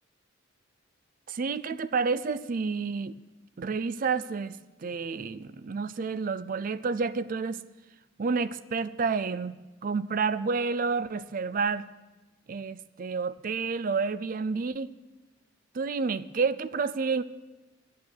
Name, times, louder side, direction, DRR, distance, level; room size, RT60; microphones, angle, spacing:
voice 1, 1.3-3.2 3.6-4.6 4.8-7.6 8.2-11.9 12.5-14.9 15.7-17.2, right 5 dB, 45° right, 16 dB, 0.4 m, -29 dB
13.0 x 9.3 x 6.6 m, 1.1 s
head